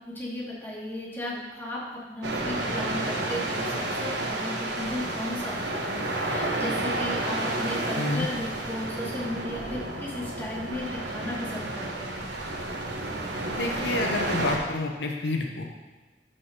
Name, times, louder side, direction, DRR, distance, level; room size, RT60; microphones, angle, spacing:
voice 1, 0.0-12.1, left 1 dB, 15° left, -6 dB, 2.3 m, -35 dB
sound 1, 2.2-14.6, right 2 dB, 75° right, 1.3 m, -31 dB
voice 2, 13.5-15.7, left 2 dB, 75° left, 2 dB, 0.8 m, -29 dB
13.5 x 6.4 x 3.0 m, 1.2 s
head